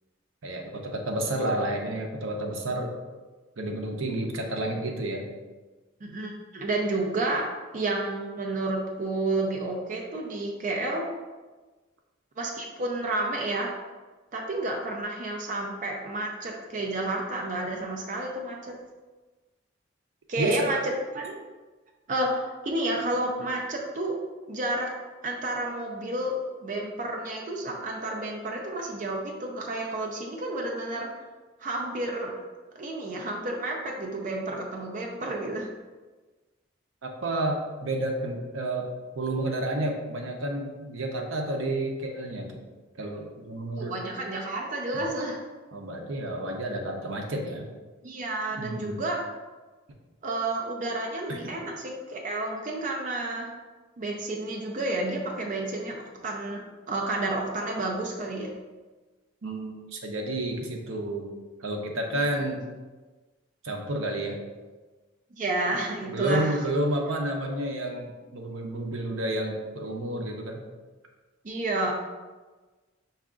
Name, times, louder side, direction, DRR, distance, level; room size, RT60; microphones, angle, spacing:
voice 1, 0.4-2.9 3.6-5.3 20.4-20.7 37.2-38.9 39.1-42.6 43.0-44.0 44.9-45.1 45.7-47.7 48.6-49.0 51.3-51.6 59.4-61.3 61.6-62.6 63.6-64.4 66.1-70.6, right 1 dB, 75° right, 2 dB, 0.7 m, -30 dB
voice 2, 6.0-7.5 7.7-11.1 12.4-13.7 14.3-18.7 20.3-21.4 22.1-24.2 24.5-24.9 25.2-26.4 26.6-31.1 31.6-32.3 32.7-35.7 43.7-45.4 48.0-49.2 50.2-53.5 54.0-58.5 65.4-66.6 71.4-71.9, right 2 dB, 40° right, 0 dB, 0.5 m, -30 dB
5.6 x 2.4 x 3.7 m, 1.3 s
head